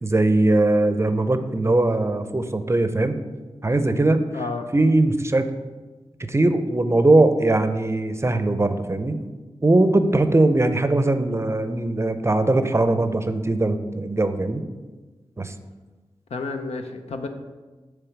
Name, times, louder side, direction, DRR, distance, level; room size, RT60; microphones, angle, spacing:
voice 1, 0.0-3.2 3.6-4.4 4.7-5.5 6.2-9.2 9.6-14.6 15.4-15.5, right 2 dB, 25° right, 9 dB, 0.6 m, -20 dB
voice 2, 4.3-4.7 16.3-17.3, left 4 dB, 80° left, 6 dB, 0.6 m, -30 dB
6.8 x 3.4 x 5.9 m, 1.3 s
cardioid pair, 40°, 11 cm